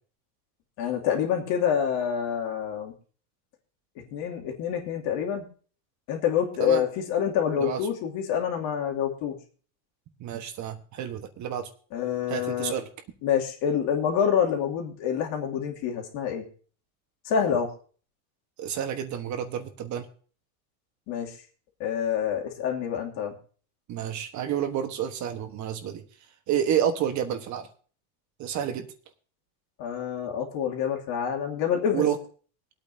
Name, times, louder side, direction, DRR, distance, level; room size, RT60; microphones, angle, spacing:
voice 1, 0.8-2.9 4.1-5.5 6.1-9.4 11.9-12.7 13.2-16.5 17.2-17.7 21.1-21.3 21.8-23.3 29.8-32.0, left 8 dB, 55° left, 2 dB, 2.7 m, -27 dB
voice 2, 10.2-11.7 12.3-12.9 18.6-20.1 23.9-26.0 26.5-27.7 28.4-28.9 31.9-32.2, right 9 dB, 40° right, 7 dB, 1.3 m, -29 dB
23.0 x 8.8 x 2.7 m, 0.41 s
supercardioid pair, 130°, 46 cm